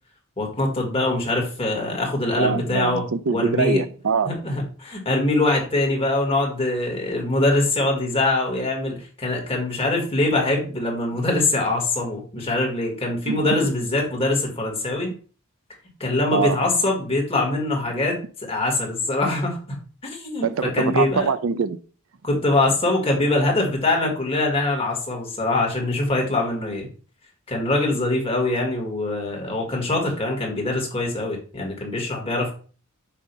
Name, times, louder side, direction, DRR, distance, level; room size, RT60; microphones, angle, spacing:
voice 1, 0.4-3.1 3.3-3.8 4.3-15.1 16.0-19.8 20.0-21.3 22.2-26.9 27.5-32.5, left 2 dB, 25° left, 1.8 m, -23 dB
voice 2, 2.4-4.3 13.3-13.5 16.3-16.6 20.4-21.8, right 5 dB, 75° right, 0.5 m, -23 dB
7.5 x 2.7 x 5.4 m
head